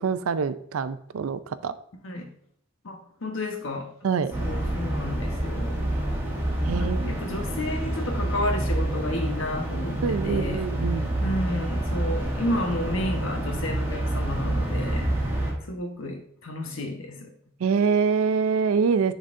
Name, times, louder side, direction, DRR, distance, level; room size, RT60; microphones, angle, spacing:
voice 1, 0.0-1.7 4.0-4.3 6.7-7.1 10.0-11.1 17.6-19.1, right 5 dB, 85° right, 13 dB, 0.4 m, -25 dB
voice 2, 2.8-3.9 4.4-5.8 6.6-10.6 11.2-15.0 15.7-17.3, left 1 dB, 70° left, 3 dB, 1.1 m, -31 dB
sound 1, 4.3-15.5, right 1 dB, 10° right, 1.6 m, -28 dB
9.7 x 4.0 x 2.6 m, 0.66 s
head